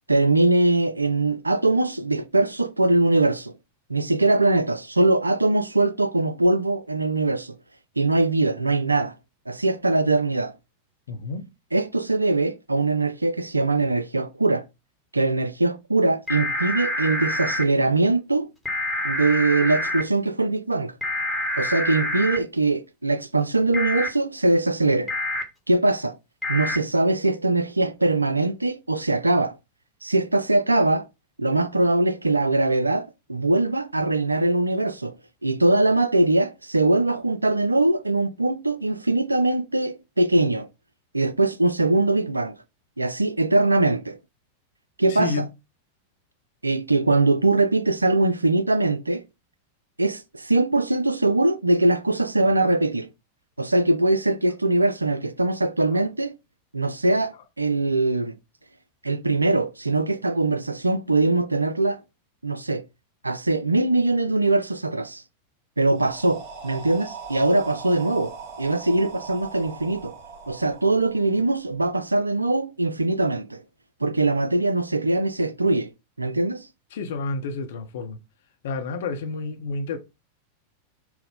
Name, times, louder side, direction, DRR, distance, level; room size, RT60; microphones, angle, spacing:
voice 1, 0.1-3.5 3.9-7.6 8.0-9.1 9.5-10.5 11.7-14.6 15.1-18.5 19.0-20.9 21.6-25.1 25.7-26.2 26.5-29.6 30.0-31.1 31.4-35.1 35.4-40.7 41.1-42.6 43.0-44.2 45.0-45.4 46.6-49.2 50.0-53.1 53.6-56.3 56.7-58.3 59.0-62.0 62.4-62.8 63.2-65.2 65.8-70.1 70.5-73.6 74.0-75.9 76.2-76.7, right 2 dB, 80° right, 0.3 m, -22 dB
voice 2, 11.1-11.5 45.1-45.5 55.9-56.0 76.9-78.2 78.6-80.0, left 3 dB, 55° left, 0.6 m, -30 dB
sound 1, 16.3-17.6 18.7-20.0 21.0-22.4 23.7-24.1 25.1-25.4 26.4-26.8, left 1 dB, 5° right, 1.1 m, -26 dB
sound 2, 65.9-71.8, right 5 dB, 45° right, 1.3 m, -40 dB
4.4 x 2.0 x 3.5 m
figure-of-eight pair, 90°, 0 cm